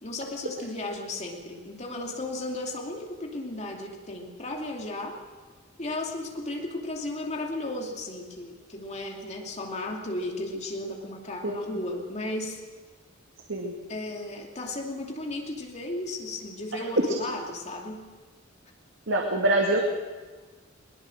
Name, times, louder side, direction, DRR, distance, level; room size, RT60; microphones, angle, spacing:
voice 1, 0.0-5.2 5.8-12.6 13.9-18.1, left 1 dB, 35° left, 1 dB, 2.7 m, -35 dB
voice 2, 19.1-19.8, right 2 dB, 70° right, 1 dB, 2.2 m, -24 dB
22.0 x 21.0 x 6.4 m, 1.4 s
head